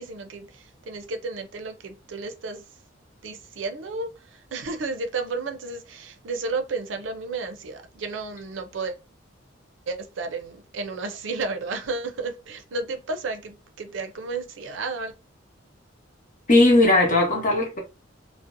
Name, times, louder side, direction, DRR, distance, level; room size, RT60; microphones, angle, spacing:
voice 1, 0.0-2.6 3.2-9.0 9.9-15.1, right 3 dB, 80° right, 0.5 m, -32 dB
voice 2, 16.5-17.8, left 2 dB, 45° left, 1.0 m, -18 dB
2.5 x 2.0 x 2.5 m
head